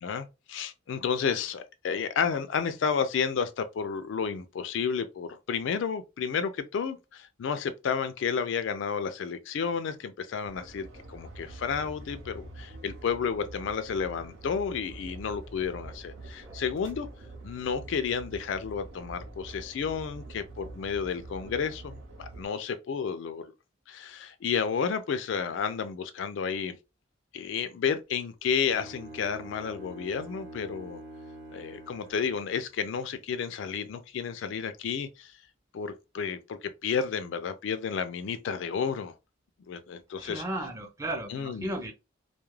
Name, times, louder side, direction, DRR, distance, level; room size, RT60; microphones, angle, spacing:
voice 1, 0.0-17.1 17.4-23.5 23.9-26.8 27.3-31.0 31.5-35.3 35.7-39.1 39.7-40.4 41.3-41.7, left 6 dB, 65° left, 0.3 m, -31 dB
sound 1, 10.4-22.5, right 2 dB, 85° right, 0.9 m, -45 dB
voice 2, 16.2-16.6 40.2-41.9, right 1 dB, 15° right, 0.5 m, -35 dB
Bowed string instrument, 28.6-32.7, right 1 dB, 60° right, 0.9 m, -46 dB
2.3 x 2.1 x 3.1 m
head